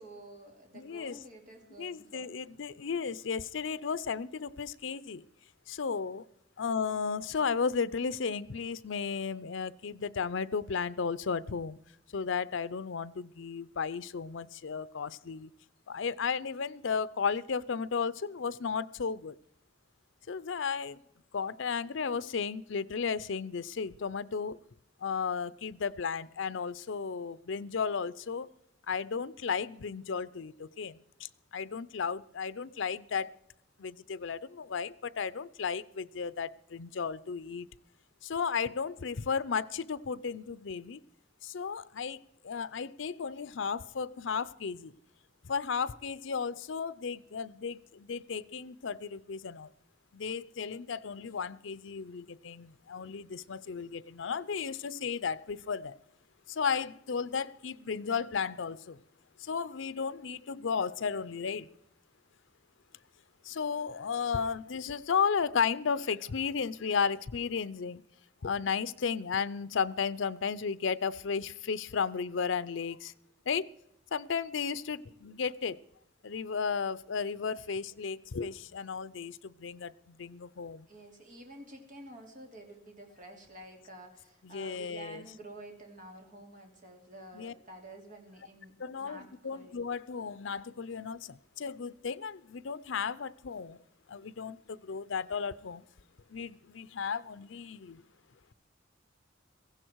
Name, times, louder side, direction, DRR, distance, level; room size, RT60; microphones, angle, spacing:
voice 1, 0.0-2.3 79.1-79.2 80.9-89.8, right 1 dB, 45° right, 3.1 m, -50 dB
voice 2, 0.7-1.2 1.8-5.3 5.7-6.2 6.6-11.8 12.1-15.5 15.9-19.3 20.3-21.0 21.3-24.6 25.0-28.5 28.9-33.3 33.8-37.7 38.2-41.0 41.4-44.9 45.4-49.7 50.1-56.0 56.5-59.0 59.4-61.7 63.4-68.0 68.4-73.1 73.5-73.7 74.1-75.8 76.2-80.9 84.4-85.3 87.3-87.5 88.8-93.8 94.1-95.8 96.3-98.0, left 6 dB, 85° left, 0.6 m, -34 dB
16.5 x 15.5 x 4.6 m
head